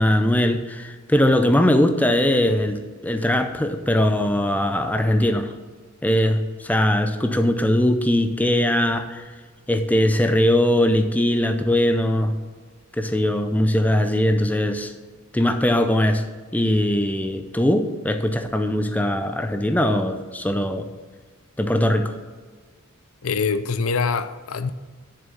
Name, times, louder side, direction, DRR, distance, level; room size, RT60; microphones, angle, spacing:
voice 1, 0.0-5.5 6.0-9.2 9.7-12.3 13.0-14.9 15.3-16.2 16.5-20.9 21.6-22.1, left 1 dB, 5° left, 0.5 m, -20 dB
voice 2, 23.2-24.7, left 5 dB, 75° left, 0.5 m, -24 dB
7.1 x 6.8 x 6.9 m
head